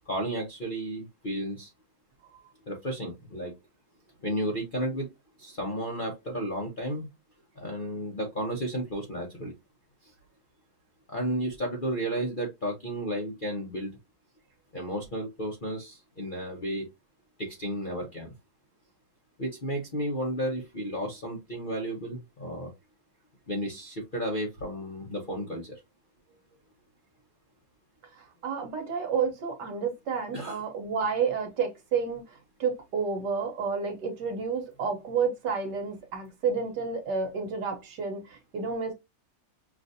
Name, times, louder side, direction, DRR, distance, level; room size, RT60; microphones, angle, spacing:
voice 1, 0.1-1.7 2.7-3.5 4.2-5.1 5.4-7.1 7.6-9.5 10.0-10.1 11.1-14.0 14.7-16.9 17.4-18.3 19.4-22.7 23.5-25.8 30.3-30.6, equal, 40° left, 0.7 m, -33 dB
voice 2, 28.1-38.9, right 5 dB, 65° right, 1.4 m, -30 dB
5.9 x 2.5 x 2.6 m
omnidirectional pair, 2.1 m